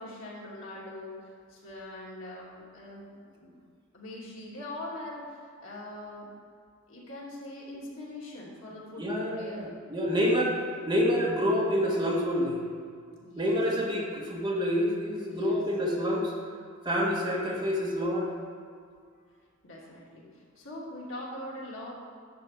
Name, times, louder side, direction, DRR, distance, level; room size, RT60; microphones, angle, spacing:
voice 1, 0.0-3.5 3.9-6.3 6.9-9.6 10.2-10.5 13.2-13.5 15.3-15.6 19.6-21.9, left 1 dB, 75° left, -5 dB, 2.9 m, -42 dB
voice 2, 9.0-10.5 10.9-12.6 13.4-16.3 16.9-18.3, equal, 20° right, -3 dB, 1.8 m, -27 dB
11.0 x 4.9 x 7.6 m, 2.2 s
head